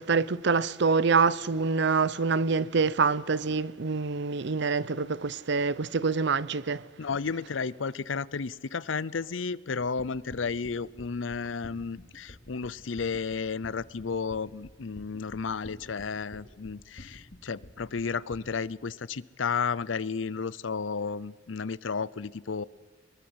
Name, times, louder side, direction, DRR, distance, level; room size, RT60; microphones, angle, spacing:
voice 1, 0.0-6.9, right 4 dB, 65° right, 0.7 m, -26 dB
voice 2, 7.0-22.6, left 5 dB, 90° left, 0.6 m, -33 dB
sound 1, 10.0-18.4, left 1 dB, 55° left, 2.7 m, -49 dB
22.5 x 22.0 x 8.0 m
head